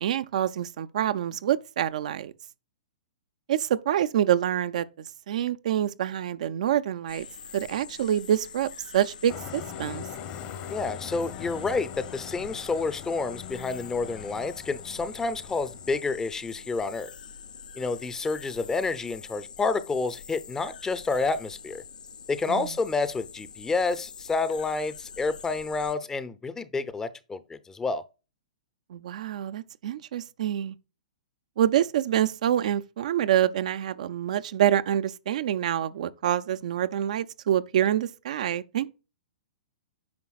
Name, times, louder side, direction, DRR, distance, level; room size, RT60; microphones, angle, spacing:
voice 1, 0.0-2.3 3.5-7.3 7.5-10.1 22.5-22.7 28.9-30.8 31.6-38.9, right 11 dB, 60° right, 0.5 m, -26 dB
sound 1, 7.1-26.0, left 6 dB, 80° left, 0.8 m, -45 dB
Truck, 9.3-16.0, left 9 dB, 40° left, 1.0 m, -41 dB
voice 2, 10.7-17.1 17.8-21.8 22.3-28.0, left 3 dB, 10° left, 0.6 m, -29 dB
9.5 x 5.7 x 2.4 m
hypercardioid pair, 120°, 4 cm